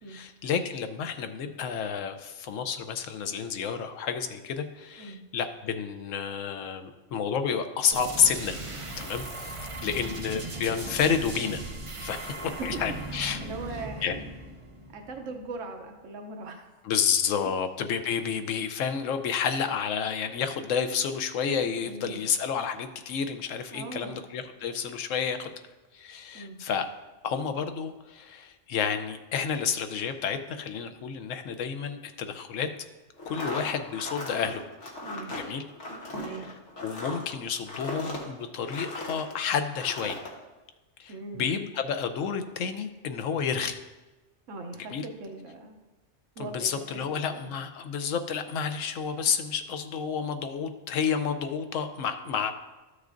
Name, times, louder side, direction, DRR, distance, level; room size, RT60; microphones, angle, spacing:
voice 1, 0.1-8.6 9.0-11.6 12.0-12.3 12.6-13.4 14.0-14.2 16.8-25.5 25.9-26.9 27.2-32.7 33.3-34.6 35.3-35.6 36.2-36.3 36.8-40.2 41.0-43.8 44.9-45.0 46.4-52.5, left 7 dB, 90° left, 8 dB, 1.0 m, -30 dB
sound 1, 7.9-15.5, right 2 dB, 30° right, 0.7 m, -38 dB
voice 2, 9.8-10.1 12.5-12.8 13.4-14.1 14.9-16.6 18.1-18.2 21.8-22.2 23.7-24.2 26.3-26.6 35.0-35.3 36.1-36.5 41.1-41.4 44.5-45.8 46.4-47.5, right 3 dB, 80° right, 4 dB, 1.1 m, -40 dB
sound 2, 33.2-39.3 39.7-40.3, left 1 dB, 70° left, 1.6 m, -38 dB
13.0 x 6.4 x 2.5 m, 1.2 s
omnidirectional pair, 1.3 m